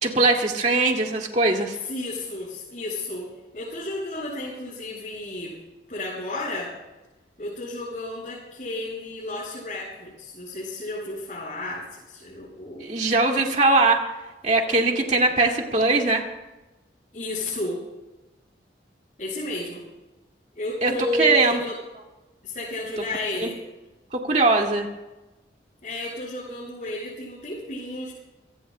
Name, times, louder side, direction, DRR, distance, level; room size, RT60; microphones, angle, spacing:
voice 1, 0.0-1.8 12.8-14.0 14.4-16.3 20.8-20.9 21.2-21.6 23.4-23.5 24.1-24.9, right 3 dB, 40° right, 1 dB, 2.2 m, -21 dB
voice 2, 1.9-5.6 5.9-6.7 7.4-12.9 17.1-17.8 19.2-19.8 20.5-21.8 22.4-23.6 25.8-28.1, left 1 dB, 45° left, -8 dB, 7.4 m, -32 dB
29.5 x 18.0 x 2.2 m, 1.1 s
head